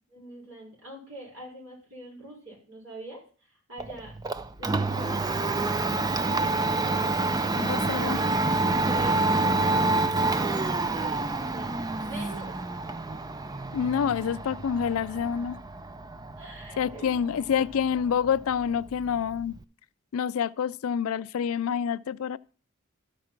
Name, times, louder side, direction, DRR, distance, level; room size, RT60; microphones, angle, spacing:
voice 1, 0.1-4.1 4.6-5.5 6.2-8.3 8.9-12.6 13.1-13.2 16.4-17.2, right 1 dB, 65° right, 5.5 m, -44 dB
Domestic sounds home sounds, 3.8-19.6, right 2 dB, 15° right, 0.4 m, -28 dB
voice 2, 7.6-8.2 13.7-15.6 16.8-19.5 20.1-22.4, left 7 dB, 75° left, 0.4 m, -27 dB
13.0 x 4.8 x 5.8 m
head